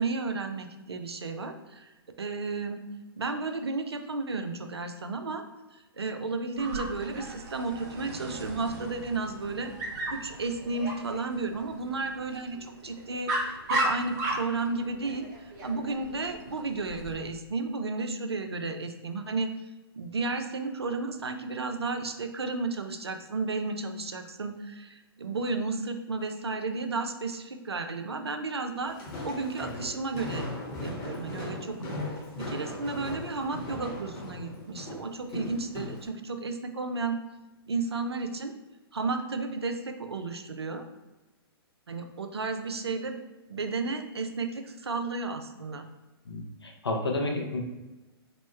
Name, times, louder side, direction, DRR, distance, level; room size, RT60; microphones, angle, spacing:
voice 1, 0.0-1.9 2.2-2.8 3.2-5.4 5.7-9.7 10.1-19.5 20.0-29.0 29.2-30.5 30.8-31.8 32.0-37.2 37.7-38.5 38.9-40.8 41.9-43.2 43.5-45.9, right 3 dB, 90° right, 7 dB, 0.4 m, -33 dB
Dog, 6.6-17.1, right 1 dB, 45° right, 0.7 m, -36 dB
Walk footsteps, 28.8-36.1, left 1 dB, 35° left, 0.9 m, -38 dB
voice 2, 46.2-47.6, left 2 dB, 85° left, 2 dB, 0.6 m, -31 dB
3.0 x 2.1 x 3.1 m, 1.1 s
figure-of-eight pair, 115°, 13 cm